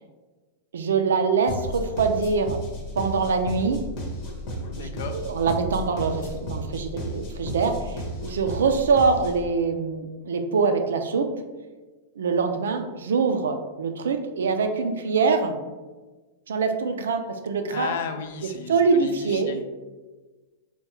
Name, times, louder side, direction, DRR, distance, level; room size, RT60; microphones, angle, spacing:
voice 1, 0.7-2.6 2.9-3.8 4.8-11.3 12.2-15.6 16.5-17.9 18.7-19.5, right 5 dB, 90° right, 6 dB, 0.4 m, -24 dB
sound 1, 1.5-9.5, equal, 45° left, 0.8 m, -34 dB
voice 2, 4.7-5.2 17.7-19.6, left 6 dB, 70° left, 7 dB, 0.4 m, -34 dB
3.4 x 2.2 x 3.0 m, 1.3 s
hypercardioid pair, 125°, 0 cm